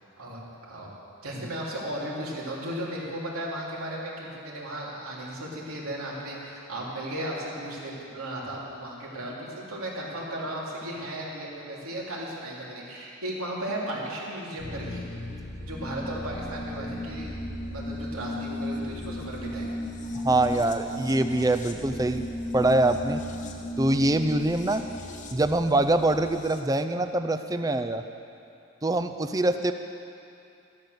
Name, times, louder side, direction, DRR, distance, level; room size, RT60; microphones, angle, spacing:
voice 1, 0.2-0.9 1.2-15.0 15.7-17.4 17.7-19.7, right 1 dB, 85° right, -4 dB, 3.3 m, -35 dB
sound 1, 14.6-26.6, left 1 dB, 35° left, 1.0 m, -35 dB
voice 2, 20.2-22.3 22.5-23.2 23.8-24.8 25.3-28.0 28.8-29.7, right 2 dB, 15° right, 8 dB, 0.4 m, -24 dB
14.0 x 12.0 x 6.7 m, 2.7 s
head